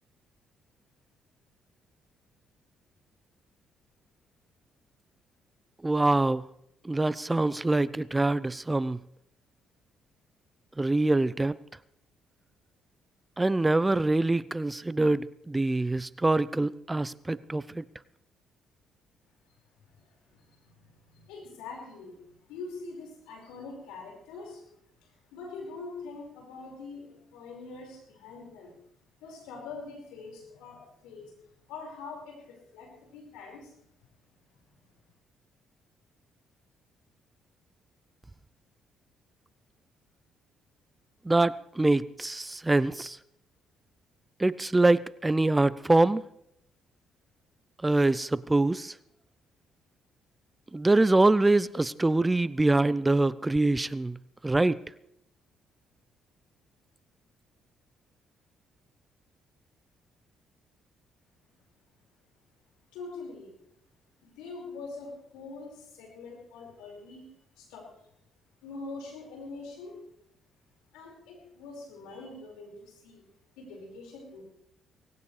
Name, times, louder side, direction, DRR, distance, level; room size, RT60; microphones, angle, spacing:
voice 1, 5.8-6.4 6.8-9.0 10.8-11.5 13.4-17.8 41.3-43.2 44.4-46.2 47.8-48.9 50.7-54.2 54.4-54.8, right 2 dB, 20° right, 18 dB, 0.5 m, -24 dB
voice 2, 19.9-24.7 25.0-28.7 29.2-31.3 31.7-33.8 62.9-63.5 64.2-67.3 67.6-67.9 68.6-70.0 70.9-73.3 73.6-74.4, left 3 dB, 80° left, 0 dB, 5.1 m, -44 dB
18.5 x 17.5 x 3.3 m, 0.75 s
hypercardioid pair, 55°, 0 cm